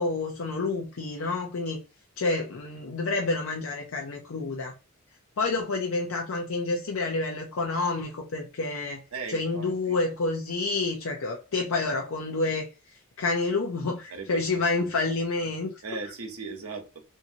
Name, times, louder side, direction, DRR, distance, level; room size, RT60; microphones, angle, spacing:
voice 1, 0.0-1.8 2.2-4.7 5.4-9.0 9.3-12.7 13.2-15.7, left 3 dB, 70° left, 0.5 m, -28 dB
voice 2, 9.1-10.0 14.1-14.9 15.8-17.0, right 4 dB, 85° right, 0.8 m, -38 dB
2.7 x 2.6 x 2.8 m
head